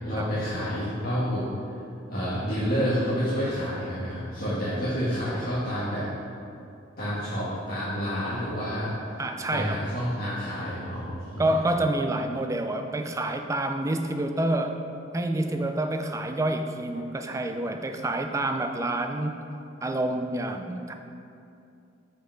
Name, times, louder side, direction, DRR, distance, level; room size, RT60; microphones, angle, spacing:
voice 1, 0.0-1.4 2.1-6.1 7.0-9.2 9.5-11.4, equal, 50° left, -12 dB, 1.5 m, -29 dB
voice 2, 9.2-9.8 11.4-14.8 15.1-19.4 19.8-20.9, right 1 dB, 15° right, 6 dB, 0.3 m, -28 dB
5.7 x 5.0 x 4.4 m, 2.6 s
head